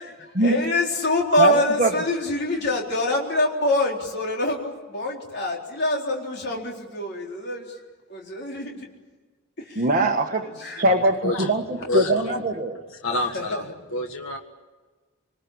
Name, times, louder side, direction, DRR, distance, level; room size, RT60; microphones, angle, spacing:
voice 1, 0.4-7.8 8.1-8.9 9.6-9.8 10.6-10.8 13.3-13.6, left 1 dB, 50° left, -1 dB, 4.2 m, -25 dB
voice 2, 1.4-1.9 9.7-10.5 10.8-12.8, right 2 dB, 35° right, 2 dB, 1.5 m, -22 dB
voice 3, 11.9-12.3 12.9-13.6 13.9-14.4, left 2 dB, 65° left, 3 dB, 1.8 m, -27 dB
28.0 x 21.0 x 8.8 m, 1.3 s
head